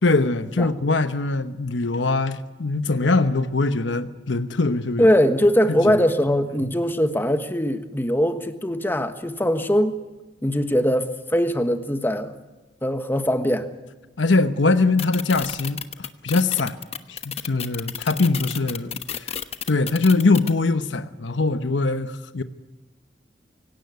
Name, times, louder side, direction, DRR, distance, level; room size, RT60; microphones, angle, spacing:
voice 1, 0.0-5.1 5.7-5.9 14.2-16.8 17.1-19.3 19.7-22.4, left 3 dB, 80° left, 1.0 m, -22 dB
voice 2, 5.0-10.0 10.4-12.3 12.8-13.7, equal, 10° left, 1.4 m, -21 dB
sound 1, 15.0-20.5, left 8 dB, 35° left, 1.1 m, -31 dB
24.5 x 17.0 x 9.5 m
head